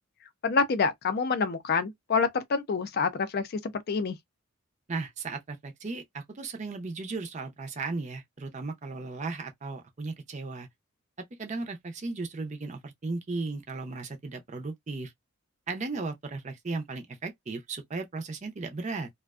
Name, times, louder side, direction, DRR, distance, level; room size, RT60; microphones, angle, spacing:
voice 1, 0.4-4.2, left 5 dB, 45° left, 0.4 m, -27 dB
voice 2, 4.9-10.7 11.4-15.1 15.7-19.1, right 3 dB, 30° right, 0.5 m, -36 dB
2.4 x 2.2 x 2.3 m
head